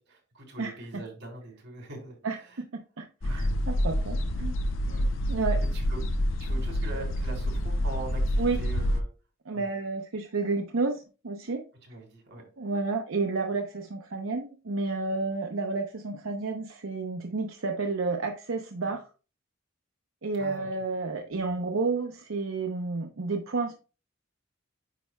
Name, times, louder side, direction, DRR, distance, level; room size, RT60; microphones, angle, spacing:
voice 1, 0.1-2.6 3.2-3.6 4.8-5.1 5.7-6.0 6.4-9.0 9.5-9.7 11.8-12.4 20.4-20.7, right 2 dB, 60° right, 1 dB, 3.2 m, -42 dB
voice 2, 2.2-2.7 3.0-4.6 5.3-5.6 8.4-8.6 9.5-11.6 12.6-19.0 20.2-23.7, right 3 dB, 85° right, 4 dB, 0.7 m, -31 dB
sound 1, 3.2-9.0, equal, 70° left, 0.6 m, -27 dB
9.1 x 5.4 x 2.2 m, 0.34 s
head